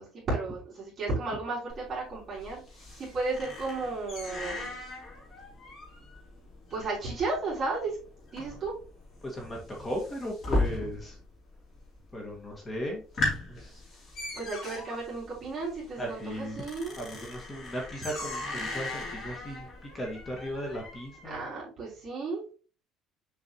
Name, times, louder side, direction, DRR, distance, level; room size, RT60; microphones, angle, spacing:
voice 1, 0.0-4.7 6.7-8.0 8.3-8.7 14.3-17.0 21.2-22.5, right 3 dB, 25° right, -7 dB, 3.7 m, -34 dB
sound 1, 1.7-11.3 11.5-12.1 12.5-12.6 12.9-21.3, left 2 dB, 35° left, 3.0 m, -37 dB
voice 2, 9.2-11.2 12.1-13.0 13.3-13.8 16.0-16.6 17.0-19.7 19.9-21.5, equal, 20° left, 0 dB, 1.7 m, -37 dB
7.0 x 4.7 x 2.9 m, 0.35 s
cardioid pair, 165°, 0 cm